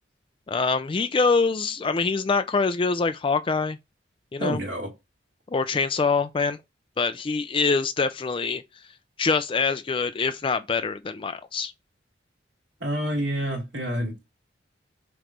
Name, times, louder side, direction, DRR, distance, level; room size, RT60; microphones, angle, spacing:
voice 1, 0.5-3.8 4.3-4.6 5.5-6.6 7.0-8.6 9.2-11.7, left 4 dB, 30° left, 0.4 m, -24 dB
voice 2, 4.4-4.9 12.8-14.1, equal, 70° right, 2.8 m, -28 dB
7.7 x 3.1 x 5.1 m
head